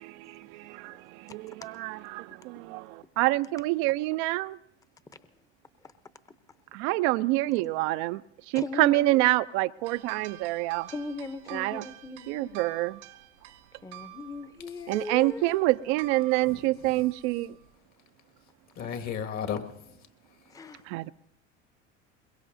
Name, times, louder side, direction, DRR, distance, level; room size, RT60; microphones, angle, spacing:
voice 1, 0.0-4.6 6.7-10.9 11.5-11.8 12.3-13.0 14.9-17.6 20.8-21.1, right 19 dB, 70° right, 0.5 m, -27 dB
voice 2, 8.5-9.2 10.9-12.5 13.8-15.7 20.5-20.8, left 3 dB, 10° left, 0.7 m, -39 dB
sound 1, 9.8-17.7, right 17 dB, 85° right, 1.2 m, -49 dB
voice 3, 16.5-17.0 18.7-20.7, left 7 dB, 50° left, 1.9 m, -37 dB
22.5 x 21.5 x 2.7 m
hypercardioid pair, 80°, 35 cm